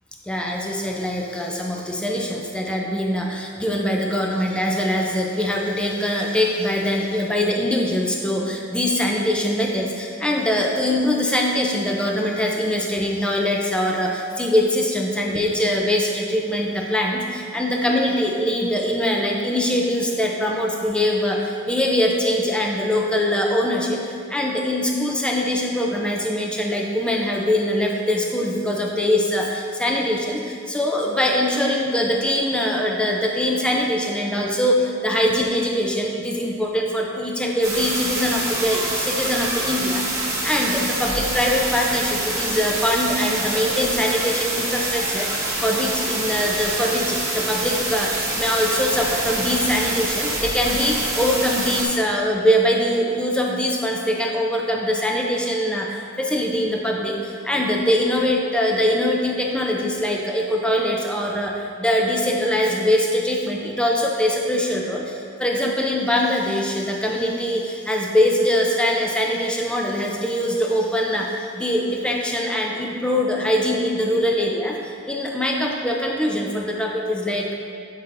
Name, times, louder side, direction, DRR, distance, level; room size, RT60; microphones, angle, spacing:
voice 1, 0.3-77.6, left 1 dB, 5° left, -1 dB, 0.4 m, -22 dB
sound 1, 37.6-51.8, right 2 dB, 15° right, 1.2 m, -26 dB
7.7 x 5.4 x 2.6 m, 2.4 s
head